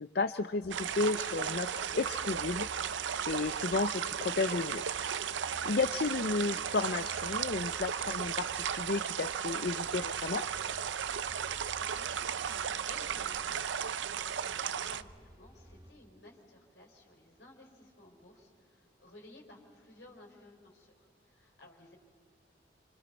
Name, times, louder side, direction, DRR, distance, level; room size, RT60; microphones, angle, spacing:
voice 1, 0.0-4.8 5.3-10.4, left 3 dB, 55° left, 10 dB, 0.5 m, -33 dB
Indoor car's sound, 0.6-15.9, equal, 20° right, 1.1 m, -54 dB
sound 1, 0.7-15.0, right 8 dB, 80° right, 0.5 m, -35 dB
voice 2, 11.8-21.9, left 1 dB, 75° left, 0 dB, 4.7 m, -56 dB
29.0 x 25.5 x 4.1 m, 2.4 s
head